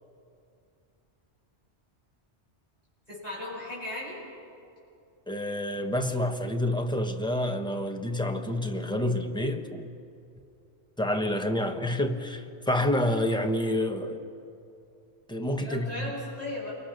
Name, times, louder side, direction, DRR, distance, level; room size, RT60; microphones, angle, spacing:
voice 1, 3.1-4.2 15.6-16.7, left 2 dB, 35° left, 8.3 m, -36 dB
voice 2, 5.3-9.9 11.0-14.2 15.3-16.1, left 1 dB, 5° left, 1.2 m, -28 dB
27.5 x 23.5 x 6.7 m
omnidirectional pair, 1.2 m